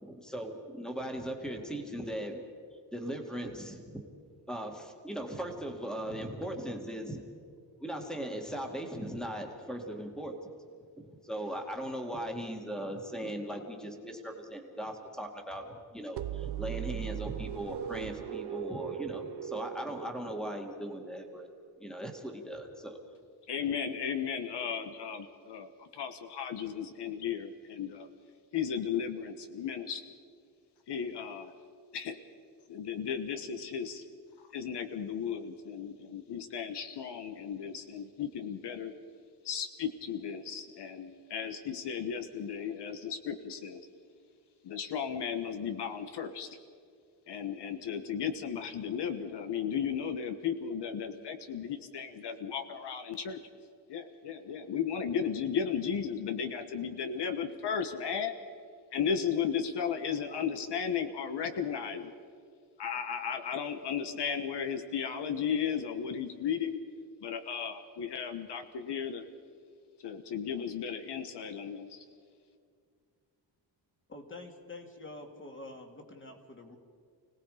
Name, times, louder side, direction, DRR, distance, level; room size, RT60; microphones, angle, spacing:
voice 1, 0.0-2.4 2.9-4.0 4.5-7.2 7.8-10.6 11.2-21.5 21.8-23.0, right 1 dB, ahead, 3 dB, 2.1 m, -38 dB
sound 1, 16.2-20.9, right 10 dB, 65° right, 0.8 m, -39 dB
voice 2, 23.5-28.1 28.5-30.1 30.9-31.5 31.9-32.2 32.7-34.0 34.5-38.9 39.4-43.8 44.6-46.5 47.3-53.4 53.9-58.3 58.9-62.1 62.8-66.8 67.2-69.2 70.0-72.0, left 7 dB, 70° left, 8 dB, 1.3 m, -35 dB
voice 3, 74.1-76.8, left 2 dB, 25° left, 3 dB, 2.6 m, -47 dB
30.0 x 18.5 x 5.0 m, 2.2 s
wide cardioid pair, 160°, 43 cm